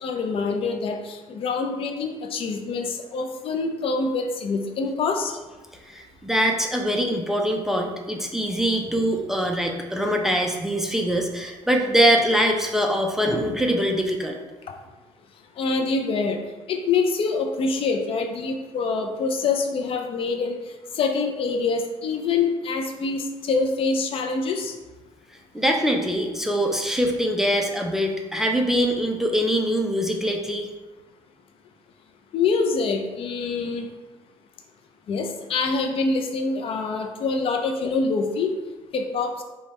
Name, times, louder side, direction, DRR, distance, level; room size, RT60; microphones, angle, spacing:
voice 1, 0.0-5.4 15.6-16.4 16.7-20.6 20.9-24.7 32.3-33.9 35.1-38.6 38.9-39.3, left 4 dB, 55° left, 5 dB, 0.5 m, -25 dB
voice 2, 5.9-14.4 25.5-30.7, equal, 5° right, 2 dB, 0.5 m, -23 dB
5.1 x 2.3 x 4.2 m, 1.2 s
cardioid pair, 120°, 11 cm